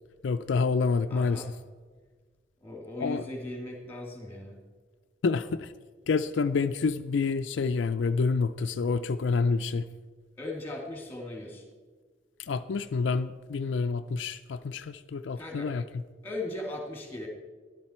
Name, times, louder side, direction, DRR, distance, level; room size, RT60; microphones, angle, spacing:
voice 1, 0.2-1.4 3.0-3.2 5.2-5.7 6.1-9.8 12.5-15.8, left 4 dB, 75° left, 10 dB, 0.4 m, -28 dB
voice 2, 1.1-1.5 2.6-4.6 10.4-11.6 15.4-15.7 16.2-17.3, left 1 dB, 10° left, 1 dB, 2.4 m, -38 dB
13.5 x 11.5 x 4.3 m, 1.5 s
head